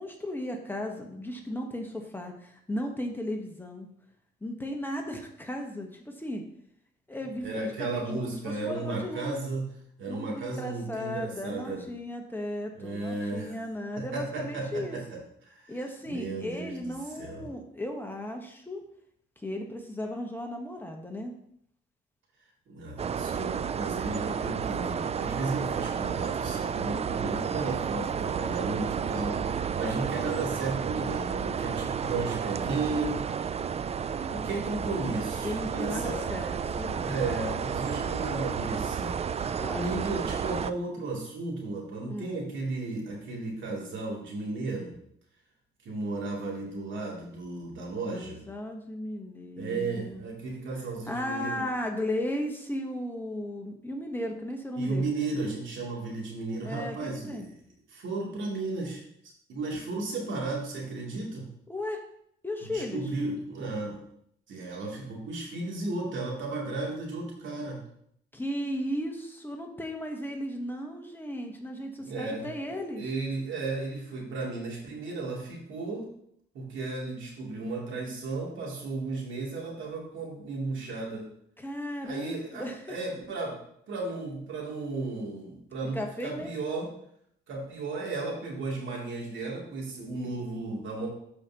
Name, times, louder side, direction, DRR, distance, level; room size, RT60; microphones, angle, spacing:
voice 1, 0.0-3.9 4.4-6.4 7.1-9.4 10.1-15.0 15.7-18.8 19.4-21.3 35.4-37.1 39.5-40.1 42.0-42.4 48.1-50.2 51.1-55.0 56.6-57.5 61.7-62.0 62.4-63.0 68.3-73.1 81.6-83.0 85.9-86.5, left 1 dB, 10° left, 1 dB, 1.3 m, -35 dB
voice 2, 7.4-9.7 10.0-11.8 12.8-13.6 14.0-15.8 16.1-17.5 22.7-33.2 34.2-36.3 36.9-44.9 45.8-48.4 49.6-51.6 54.8-57.5 57.9-59.0 59.5-61.5 62.6-64.0 64.5-67.8 72.0-72.5 72.9-76.0 76.5-81.3 82.0-83.5 83.9-86.9 87.5-91.1, right 3 dB, 70° right, -3 dB, 3.0 m, -34 dB
sound 1, 23.0-40.7, right 7 dB, 30° right, 0.4 m, -31 dB
12.0 x 5.1 x 3.0 m, 0.70 s
cardioid pair, 90°, 20 cm